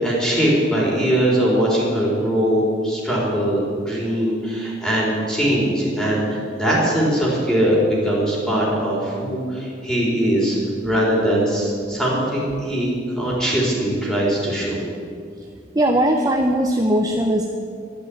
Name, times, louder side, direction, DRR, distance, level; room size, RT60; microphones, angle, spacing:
voice 1, 0.0-7.8 8.0-10.6 10.8-14.8, right 1 dB, 5° left, -5 dB, 4.3 m, -21 dB
voice 2, 15.7-17.5, right 1 dB, 20° right, 2 dB, 0.8 m, -19 dB
12.0 x 12.0 x 8.7 m, 2.3 s
head